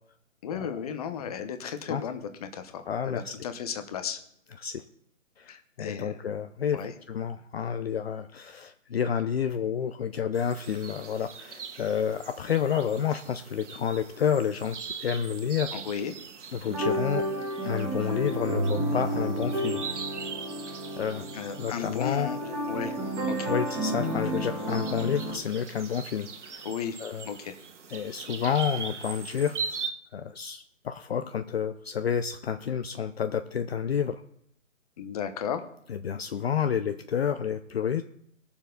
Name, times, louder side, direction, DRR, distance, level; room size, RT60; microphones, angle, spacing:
voice 1, 0.4-4.2 5.5-6.1 6.7-6.9 15.7-16.1 21.3-23.0 23.3-23.5 26.6-27.0 27.3-27.5 35.0-35.6, left 8 dB, 30° left, 9 dB, 0.9 m, -34 dB
voice 2, 2.9-3.3 4.6-4.8 5.4-15.7 16.5-17.2 17.6-19.8 21.0-21.3 21.6-22.3 23.4-26.7 27.0-27.3 27.9-34.2 35.9-38.0, left 8 dB, 50° left, 9 dB, 0.6 m, -30 dB
sound 1, 10.3-29.9, right 6 dB, 60° right, 1.5 m, -42 dB
sound 2, 16.7-25.4, right 1 dB, 10° right, 2.0 m, -31 dB
19.0 x 7.0 x 3.9 m, 0.72 s
hypercardioid pair, 145°, 40 cm